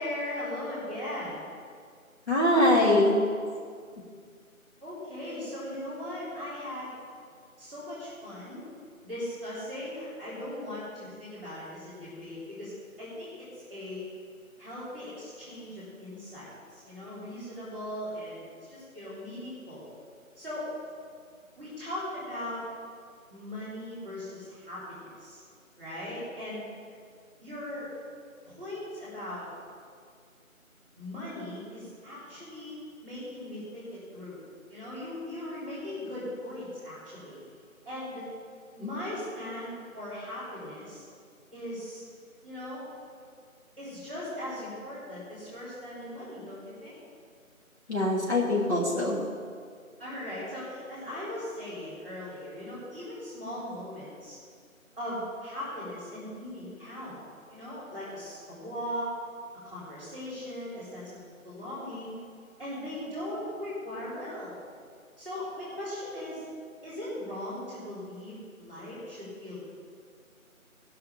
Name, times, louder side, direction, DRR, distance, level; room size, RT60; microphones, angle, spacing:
voice 1, 0.0-1.5 4.8-6.9 7.6-8.6 9.0-14.0 14.6-19.9 20.4-20.7 21.6-22.6 23.3-25.4 25.8-26.7 27.4-27.9 28.5-29.5 31.0-32.8 33.0-34.4 34.7-37.4 37.8-38.3 38.7-41.0 41.5-42.0 42.4-42.8 43.8-47.0 50.0-54.4 55.0-57.2 57.5-59.1 59.6-62.2 62.6-64.5 65.2-66.4 66.8-69.6, left 1 dB, 10° right, -9 dB, 2.6 m, -39 dB
voice 2, 2.3-3.2 47.9-49.2, left 1 dB, 50° left, -4 dB, 2.6 m, -23 dB
14.5 x 5.8 x 6.9 m, 2.1 s
figure-of-eight pair, 175°, 42 cm